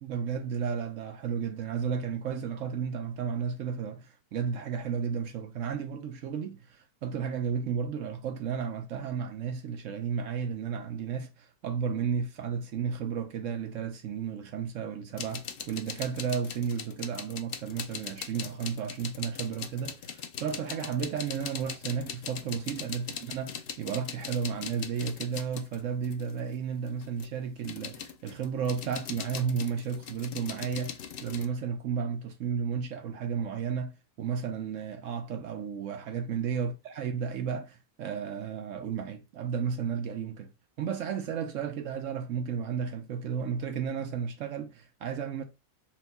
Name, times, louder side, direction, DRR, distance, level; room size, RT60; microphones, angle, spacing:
voice 1, 0.0-40.5 40.8-45.4, right 7 dB, 65° right, 0.9 m, -33 dB
sound 1, 15.2-26.4 26.9-31.5, left 7 dB, 90° left, 0.5 m, -40 dB
4.4 x 2.3 x 4.0 m
omnidirectional pair, 1.6 m